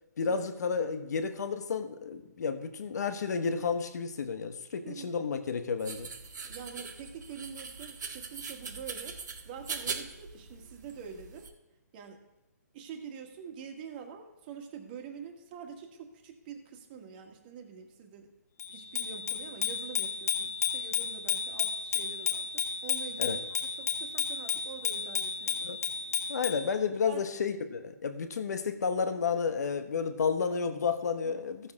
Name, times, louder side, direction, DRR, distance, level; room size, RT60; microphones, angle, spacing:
voice 1, 0.2-6.1 23.2-23.4 25.6-25.8 26.3-31.7, left 5 dB, 65° left, 9 dB, 1.1 m, -31 dB
sound 1, 5.8-11.5, right 5 dB, 75° right, 1.4 m, -41 dB
voice 2, 6.4-9.2 9.4-11.5 11.9-12.2 12.7-18.3 18.7-23.4 23.8-25.8 26.2-26.4 27.1-27.2 31.2-31.3, right 7 dB, 30° right, 3 dB, 1.6 m, -46 dB
Bicycle bell, 18.6-26.7, left 7 dB, 50° left, 1.7 m, -33 dB
15.0 x 7.0 x 3.6 m, 0.99 s
hypercardioid pair, 155°, 10 cm